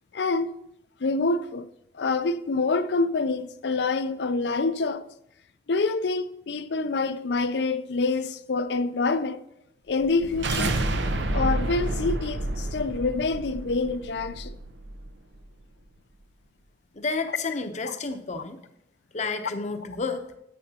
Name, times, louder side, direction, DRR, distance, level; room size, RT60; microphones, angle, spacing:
voice 1, 0.1-0.5 1.0-1.7 1.9-5.1 5.7-9.4 9.9-10.8 11.3-14.5 17.8-17.9, left 3 dB, 65° left, 0.5 m, -26 dB
sound 1, 10.0-15.1, right 2 dB, 85° right, 0.8 m, -29 dB
voice 2, 17.0-18.6 19.1-20.2, left 4 dB, 40° left, 0.8 m, -30 dB
10.5 x 9.0 x 2.9 m
head